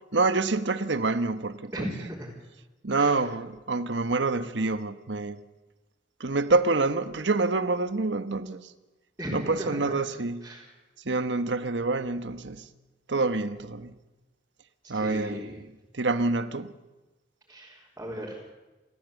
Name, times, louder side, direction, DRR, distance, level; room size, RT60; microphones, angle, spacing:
voice 1, 0.1-1.7 2.8-5.4 6.2-8.7 9.3-10.5 11.0-12.7 13.1-14.0 14.9-15.5 15.9-16.7, right 3 dB, 90° right, 1.2 m, -27 dB
voice 2, 1.7-2.3 3.0-3.1 9.2-9.9 10.4-10.7 14.8-15.6 17.5-18.5, equal, 15° right, 4.0 m, -36 dB
29.0 x 14.5 x 8.4 m
head